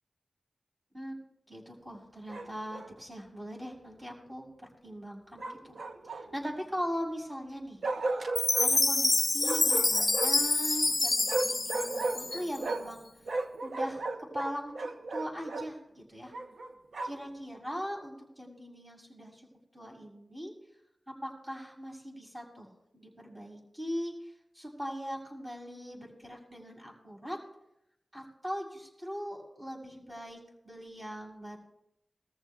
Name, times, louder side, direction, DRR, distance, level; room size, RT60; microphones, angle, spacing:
voice 1, 1.5-5.8 6.0-8.2 8.6-13.3 13.6-16.3 17.0-19.5 19.7-20.5 21.2-27.4 28.1-31.6, equal, 20° right, -2 dB, 6.7 m, -40 dB
Bark, 2.3-2.9 5.4-6.5 7.8-8.7 9.4-10.5 11.3-13.0 13.2-15.7 16.3-17.3, right 2 dB, 90° right, 1.0 m, -35 dB
Chime, 8.4-12.7, left 2 dB, 40° left, 0.5 m, -27 dB
23.0 x 14.0 x 2.4 m, 0.79 s
wide cardioid pair, 75°, 0 cm